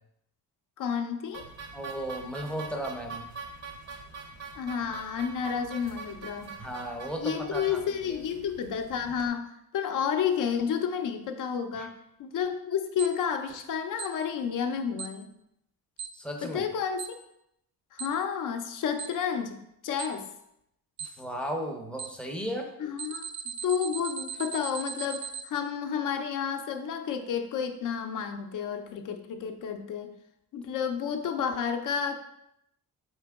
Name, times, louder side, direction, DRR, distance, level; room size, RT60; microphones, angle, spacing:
voice 1, 0.8-1.4 4.6-6.6 7.2-11.9 12.2-15.3 16.4-17.2 17.9-19.6 19.8-20.3 22.8-30.1 30.5-32.1, left 7 dB, 55° left, 7 dB, 0.6 m, -31 dB
sound 1, 1.3-9.3, right 4 dB, 40° right, 0.6 m, -44 dB
voice 2, 1.7-3.3 6.6-8.2 11.8-11.9 16.1-16.6 21.0-22.7, equal, 5° left, 2 dB, 0.5 m, -35 dB
Alarm, 13.0-13.1 14.0-14.1 15.0-15.1 16.0-16.1 17.0-17.1 18.0-18.1 19.0-19.1 20.0-20.1 21.0-21.1 22.0-22.1 23.0-25.4, right 7 dB, 85° right, 0.5 m, -36 dB
4.5 x 2.9 x 3.4 m, 0.79 s
cardioid pair, 110°, 39 cm